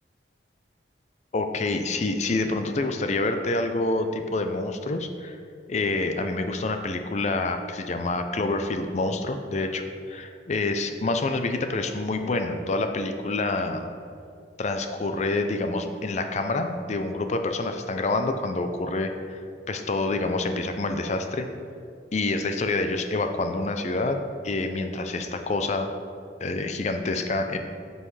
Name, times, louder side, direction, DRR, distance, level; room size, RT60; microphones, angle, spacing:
voice 1, 1.3-5.4 5.7-13.9 14.6-19.4 19.7-21.5 22.1-24.2 24.4-25.9 26.4-27.6, left 2 dB, 40° left, 7 dB, 0.4 m, -27 dB
9.8 x 5.5 x 3.2 m, 2.5 s
head